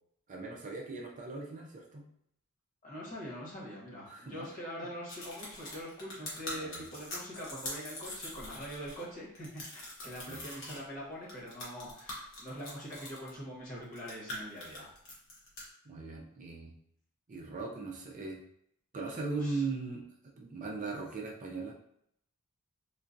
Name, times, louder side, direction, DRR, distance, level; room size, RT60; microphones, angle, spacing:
voice 1, 0.3-2.1 4.1-4.5 6.5-6.8 10.3-10.4 15.9-16.7 17.3-18.4 18.9-20.0 20.4-21.7, right 3 dB, 35° right, -1 dB, 0.4 m, -39 dB
voice 2, 2.8-14.9 19.3-19.6, equal, 40° left, -6 dB, 1.2 m, -43 dB
sound 1, 5.1-9.0 9.4-10.8 11.3-13.3 13.8-15.6, left 1 dB, 60° left, 1.0 m, -43 dB
3.7 x 2.3 x 2.6 m, 0.73 s
head